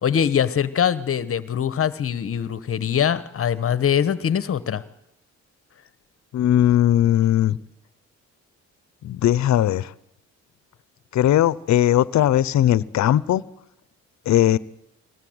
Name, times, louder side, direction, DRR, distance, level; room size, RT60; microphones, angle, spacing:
voice 1, 0.0-4.8, left 8 dB, 50° left, 1.1 m, -22 dB
voice 2, 6.3-7.6 9.0-9.9 11.1-13.4 14.3-14.6, left 12 dB, 65° left, 0.8 m, -18 dB
22.0 x 17.0 x 7.9 m
cardioid pair, 90°, 30 cm